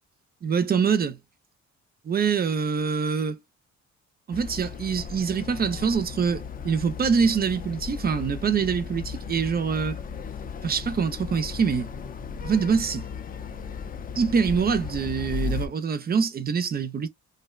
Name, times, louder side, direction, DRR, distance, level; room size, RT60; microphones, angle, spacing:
voice 1, 0.4-1.2 2.0-3.4 4.3-10.0 10.6-11.9 12.4-13.1 14.2-17.1, right 6 dB, 30° right, 0.5 m, -25 dB
sound 1, 4.3-15.7, left 5 dB, 30° left, 0.4 m, -36 dB
2.6 x 2.1 x 2.3 m
cardioid pair, 90°, 30 cm